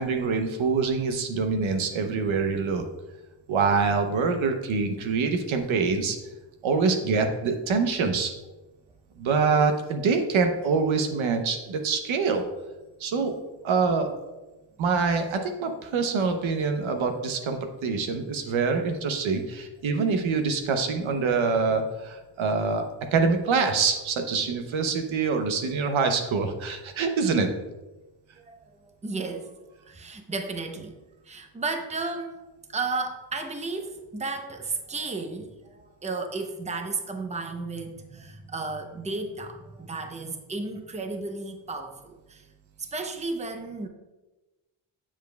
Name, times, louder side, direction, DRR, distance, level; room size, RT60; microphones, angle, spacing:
voice 1, 0.0-2.8 3.5-6.2 6.6-8.3 9.2-12.4 13.0-13.4 13.6-14.1 14.8-27.5, right 4 dB, 75° right, 6 dB, 0.9 m, -25 dB
voice 2, 28.4-29.6 29.8-31.0 31.2-32.4 32.7-42.5 42.8-43.9, right 3 dB, 15° right, 6 dB, 0.7 m, -33 dB
7.3 x 7.1 x 2.3 m, 1.1 s
cardioid pair, 70°, 48 cm